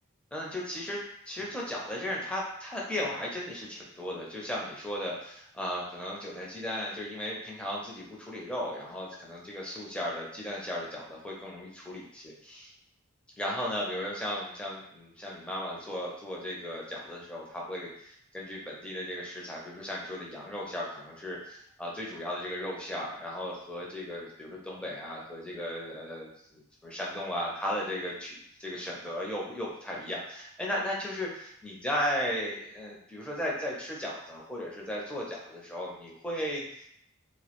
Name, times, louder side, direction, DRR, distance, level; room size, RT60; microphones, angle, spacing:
voice 1, 0.3-1.0 1.3-12.7 13.4-36.9, left 1 dB, 5° left, -4 dB, 0.4 m, -36 dB
2.2 x 2.0 x 2.8 m, 0.70 s
head